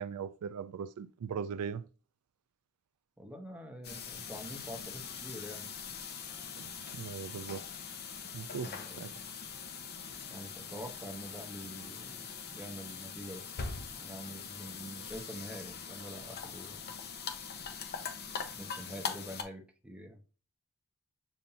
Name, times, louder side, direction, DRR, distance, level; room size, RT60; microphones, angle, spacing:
voice 1, 0.0-1.9 6.5-7.6 8.3-8.7 9.0-9.1, right 6 dB, 90° right, 0.4 m, -39 dB
voice 2, 3.2-5.7 8.5-9.2 10.3-13.6 14.0-16.9 18.5-20.2, equal, 5° right, 0.9 m, -46 dB
sound 1, 3.8-19.4, left 6 dB, 50° left, 0.8 m, -42 dB
7.0 x 2.6 x 2.7 m
head